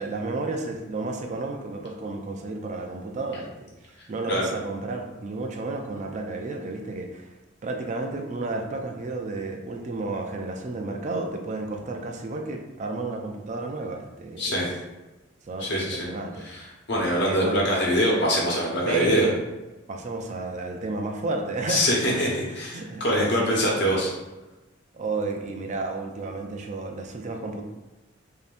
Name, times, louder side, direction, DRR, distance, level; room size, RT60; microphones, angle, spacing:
voice 1, 0.0-7.3 7.6-14.5 15.5-17.6 18.8-19.3 19.9-21.8 22.1-23.6 24.9-27.6, right 3 dB, 35° right, 3 dB, 0.4 m, -32 dB
voice 2, 14.4-14.7 15.6-16.1 16.4-19.3 21.7-24.1, equal, 60° left, -3 dB, 1.1 m, -24 dB
5.1 x 2.8 x 2.5 m, 1.1 s
head